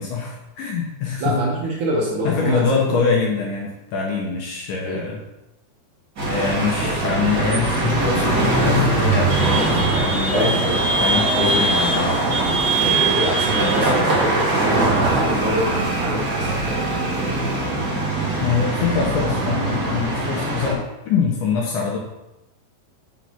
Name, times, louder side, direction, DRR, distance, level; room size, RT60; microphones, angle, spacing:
voice 1, 0.0-1.4 2.2-5.2 6.3-12.2 18.4-22.0, left 5 dB, 75° left, -2 dB, 2.1 m, -24 dB
voice 2, 1.2-3.0 4.8-5.1 6.8-6.9 10.3-10.8 11.4-11.7 12.8-17.5, right 1 dB, 70° right, -2 dB, 2.0 m, -26 dB
sound 1, 6.2-20.7, right 2 dB, 50° right, 1.2 m, -21 dB
6.2 x 3.8 x 5.8 m, 0.95 s
omnidirectional pair, 4.4 m